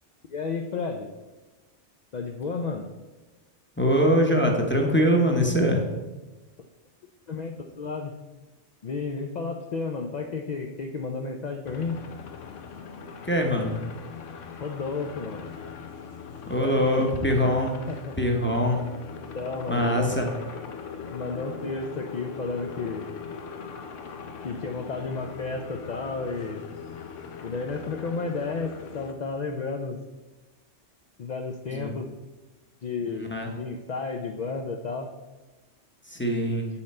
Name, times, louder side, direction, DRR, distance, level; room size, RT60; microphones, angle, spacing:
voice 1, 0.3-1.1 2.1-2.9 7.3-8.1 8.8-12.0 14.6-15.4 16.4-17.2 17.9-18.1 19.3-20.2 21.1-23.1 24.4-26.6 27.4-30.0 31.2-32.1 32.8-35.1, left 4 dB, 55° left, 4 dB, 0.5 m, -32 dB
voice 2, 3.8-5.9 13.2-13.8 16.5-17.7 18.2-18.8 19.7-20.3 31.7-31.9 33.1-33.5 36.0-36.7, equal, 10° left, 0 dB, 0.8 m, -23 dB
sound 1, 11.6-29.1, left 6 dB, 85° left, 1.1 m, -40 dB
7.7 x 5.8 x 4.3 m, 1.1 s
omnidirectional pair, 1.2 m